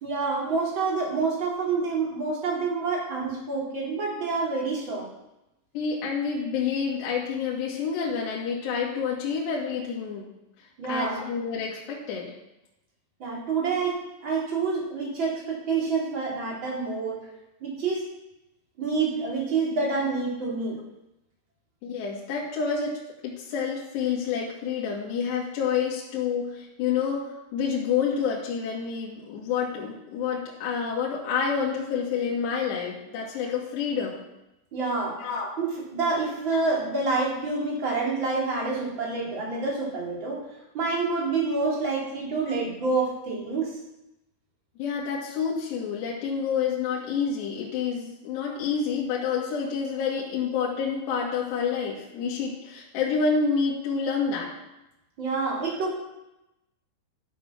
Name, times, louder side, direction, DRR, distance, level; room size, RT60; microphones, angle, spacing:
voice 1, 0.0-5.1 10.8-11.1 13.2-17.3 17.6-18.0 18.8-20.8 34.7-35.2 35.6-40.4 40.7-43.8 55.2-56.0, right 4 dB, 25° right, -4 dB, 3.7 m, -27 dB
voice 2, 5.7-10.2 10.9-12.3 21.8-22.9 23.2-34.2 35.2-35.6 44.8-54.5, left 6 dB, 70° left, -4 dB, 3.9 m, -28 dB
11.5 x 9.1 x 6.1 m, 0.91 s
omnidirectional pair, 5.4 m